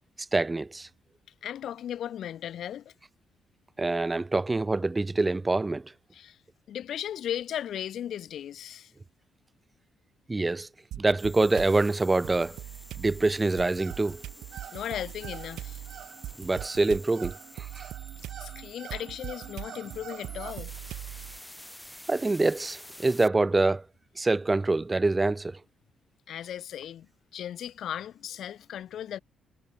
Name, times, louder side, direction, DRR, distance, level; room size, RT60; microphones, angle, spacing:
voice 1, 0.3-0.9 3.8-5.9 10.3-10.7 10.9-12.6 13.0-14.2 16.4-17.9 22.1-23.8 24.2-25.6, right 2 dB, 20° right, 0.3 m, -25 dB
voice 2, 1.4-2.9 6.1-6.4 6.7-8.9 14.7-15.8 18.4-20.7 26.3-29.2, left 10 dB, 70° left, 2.6 m, -36 dB
sound 1, 10.9-11.8 12.2-21.4, right 13 dB, 85° right, 1.7 m, -41 dB
sound 2, 11.1-23.3, left 1 dB, 5° left, 1.7 m, -49 dB
sound 3, 13.2-20.5, right 10 dB, 65° right, 3.2 m, -48 dB
cardioid pair, 90°, 0 cm